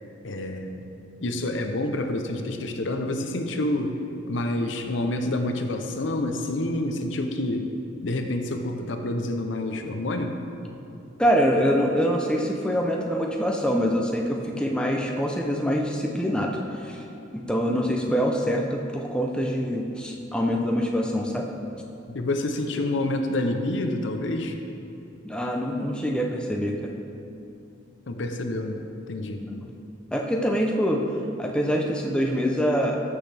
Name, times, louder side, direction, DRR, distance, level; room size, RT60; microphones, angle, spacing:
voice 1, 0.2-0.9 1.2-4.0 4.3-7.7 8.0-10.4 22.1-24.5 28.1-28.8 29.1-29.4, left 1 dB, 65° left, 5 dB, 0.7 m, -28 dB
voice 2, 11.2-17.0 17.3-21.5 25.2-26.9 29.4-29.7 30.1-31.0 31.4-33.0, equal, 5° left, 0 dB, 0.5 m, -25 dB
14.0 x 6.4 x 3.4 m, 2.8 s
head